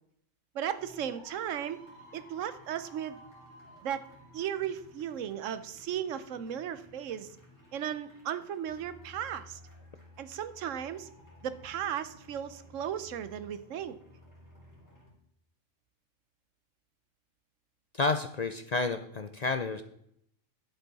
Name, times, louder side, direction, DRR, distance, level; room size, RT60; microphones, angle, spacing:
voice 1, 0.5-1.8 2.1-3.2 3.8-4.1 4.3-7.4 7.7-9.6 10.2-11.1 11.4-14.0, right 9 dB, 85° right, 13 dB, 1.1 m, -36 dB
sound 1, 0.8-15.1, left 1 dB, 15° left, 3.9 m, -55 dB
voice 2, 18.0-19.8, left 3 dB, 50° left, 8 dB, 0.5 m, -30 dB
10.5 x 8.1 x 4.0 m, 0.72 s
omnidirectional pair, 1.3 m